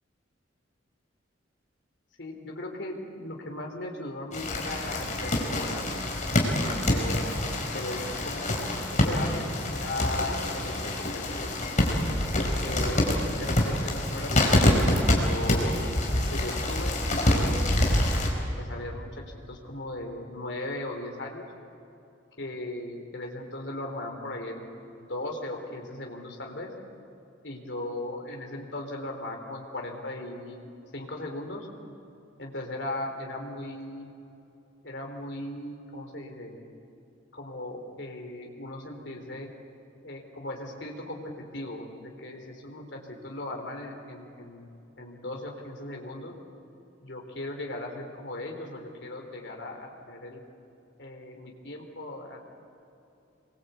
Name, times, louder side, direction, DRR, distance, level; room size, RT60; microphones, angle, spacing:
voice 1, 2.2-5.9 6.3-7.2 7.7-8.5 8.9-11.6 12.4-13.0 13.3-14.4 14.7-15.7 16.3-17.0 17.3-18.0 18.6-19.1 19.5-21.4 22.4-24.7 25.0-26.7 27.4-31.7 32.4-34.1 34.8-36.6 37.3-39.5 40.0-41.2 41.5-44.7 45.0-46.3 47.0-50.4 51.0-52.5, left 1 dB, 70° left, 1 dB, 4.0 m, -37 dB
sound 1, 4.3-18.3, left 1 dB, 40° left, 4.7 m, -26 dB
27.0 x 23.5 x 8.4 m, 2.9 s
head